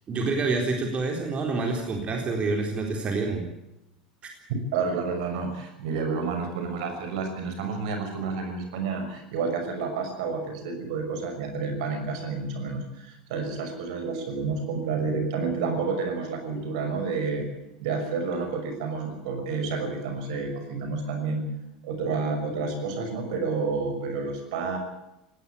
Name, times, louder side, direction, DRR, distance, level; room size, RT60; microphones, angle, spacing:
voice 1, 0.1-3.4, right 3 dB, 30° right, 2 dB, 3.9 m, -27 dB
voice 2, 4.7-17.5 17.8-21.5 21.8-24.8, right 4 dB, 60° right, 6 dB, 6.2 m, -30 dB
20.0 x 18.0 x 8.5 m, 0.89 s
figure-of-eight pair, 80°, 4 cm